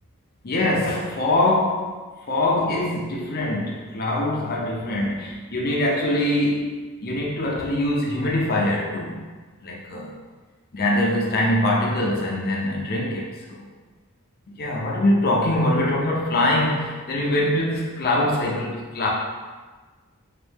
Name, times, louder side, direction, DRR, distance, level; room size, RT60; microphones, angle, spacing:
voice 1, 0.4-1.9 2.3-6.7 7.0-9.2 9.6-10.1 10.7-13.7 14.5-19.1, left 1 dB, 45° left, -3 dB, 0.6 m, -23 dB
4.1 x 2.7 x 3.5 m, 1.3 s
head